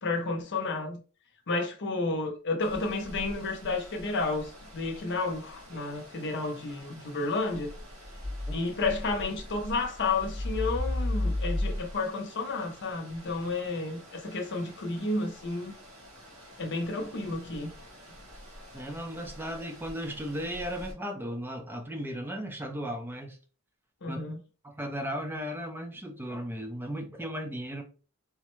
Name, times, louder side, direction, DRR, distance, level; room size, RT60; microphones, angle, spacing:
voice 1, 0.0-1.0 1.5-7.7 8.5-15.7 16.6-17.7 24.0-24.4, left 3 dB, 55° left, 0.7 m, -31 dB
sound 1, 2.6-20.9, left 1 dB, 85° right, 1.6 m, -39 dB
voice 2, 18.7-23.4 24.0-24.2 24.6-27.8, equal, 10° right, 0.4 m, -36 dB
3.4 x 2.1 x 3.0 m
head